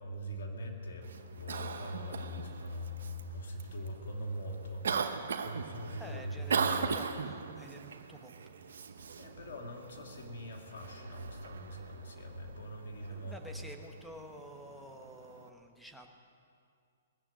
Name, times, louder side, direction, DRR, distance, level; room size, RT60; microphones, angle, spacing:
voice 1, 0.0-1.1 1.3-5.1 5.4-6.9 9.2-13.3, equal, 70° left, 1 dB, 2.9 m, -42 dB
Cough, 1.0-15.5, right 5 dB, 80° right, 1.0 m, -40 dB
voice 2, 6.0-8.3 13.1-16.1, equal, ahead, 3 dB, 1.4 m, -50 dB
20.5 x 7.1 x 9.0 m, 2.3 s
hypercardioid pair, 135°, 0 cm